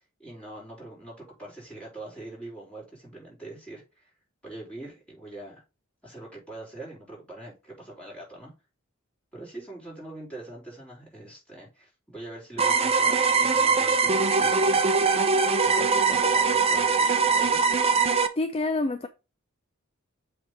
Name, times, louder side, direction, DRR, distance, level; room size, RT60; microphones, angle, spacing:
voice 1, 0.2-4.1 4.4-5.6 6.0-8.5 9.3-15.4 15.6-17.6, right 2 dB, 5° left, 4.8 m, -43 dB
sound 1, 12.6-18.3, right 4 dB, 30° right, 0.8 m, -22 dB
voice 2, 18.4-19.1, left 2 dB, 30° left, 0.5 m, -27 dB
7.7 x 3.6 x 5.0 m
head